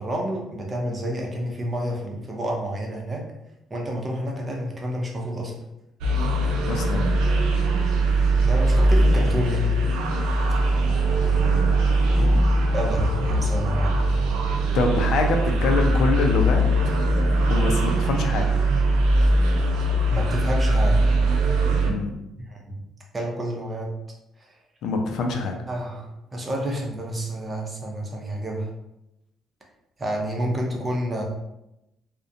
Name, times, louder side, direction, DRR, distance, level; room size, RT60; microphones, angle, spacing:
voice 1, 0.0-3.3 3.7-5.5 8.4-9.7 12.7-13.9 20.1-21.0 22.5-22.8 23.1-23.9 25.7-28.7 30.0-31.2, right 1 dB, 25° right, -1 dB, 0.6 m, -29 dB
sound 1, 6.0-21.9, right 1 dB, 85° right, 0.4 m, -21 dB
voice 2, 6.6-7.1 14.7-16.6 17.5-18.5 21.8-22.1 24.8-25.6, left 3 dB, 75° left, 3 dB, 0.4 m, -24 dB
2.4 x 2.1 x 2.6 m, 0.88 s
cardioid pair, 85°, 0 cm